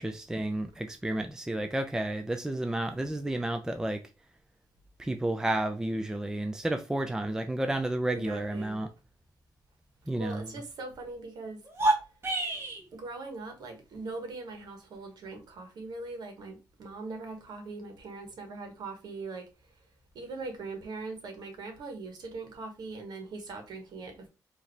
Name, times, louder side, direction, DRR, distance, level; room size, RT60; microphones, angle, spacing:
voice 1, 0.0-4.0 5.0-8.9 10.1-10.5, right 1 dB, 10° right, 0.5 m, -31 dB
voice 2, 8.0-8.8 10.1-11.9 12.9-19.5 20.1-24.3, right 3 dB, 70° right, 1.5 m, -41 dB
sound 1, 11.6-12.8, right 2 dB, 35° right, 1.5 m, -27 dB
4.7 x 2.9 x 3.2 m
cardioid pair, 90°, 7 cm